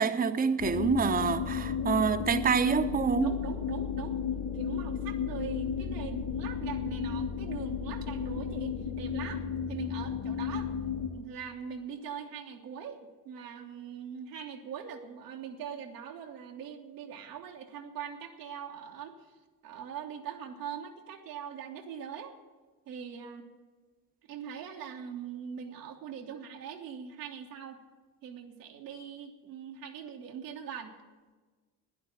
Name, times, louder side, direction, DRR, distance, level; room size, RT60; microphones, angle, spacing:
voice 1, 0.0-3.3, right 6 dB, 20° right, 0.8 m, -27 dB
sound 1, 0.6-11.1, left 7 dB, 65° left, 3.4 m, -33 dB
voice 2, 3.2-4.2 4.5-10.7 11.1-19.3 19.6-22.3 22.9-23.5 24.2-27.8 28.2-30.9, right 7 dB, 85° right, 1.4 m, -42 dB
11.5 x 10.5 x 8.7 m
hypercardioid pair, 50°, 46 cm